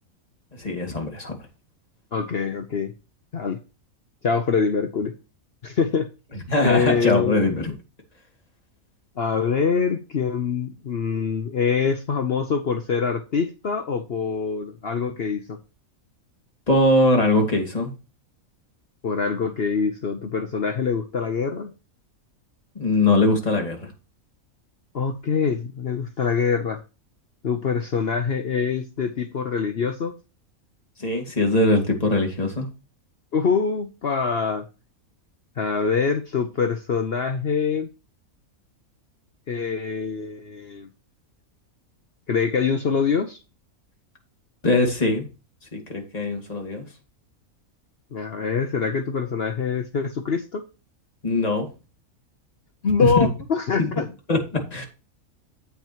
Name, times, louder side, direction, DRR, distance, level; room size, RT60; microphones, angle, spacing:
voice 1, 0.6-1.3 6.5-7.7 16.7-17.9 22.8-23.9 31.0-32.7 44.6-45.3 45.7-46.9 51.2-51.7 53.0-53.1 53.8-53.9 54.3-54.9, left 2 dB, 25° left, 2 dB, 2.5 m, -21 dB
voice 2, 2.1-2.9 3.3-3.6 4.2-5.1 5.6-6.1 6.6-7.5 9.2-15.6 19.0-21.7 24.9-26.8 27.4-30.1 33.3-34.6 35.6-37.9 39.5-40.9 42.3-43.4 48.1-50.6 52.8-54.1, left 5 dB, 50° left, 7 dB, 1.0 m, -24 dB
9.1 x 8.8 x 3.0 m, 0.30 s
omnidirectional pair, 1.5 m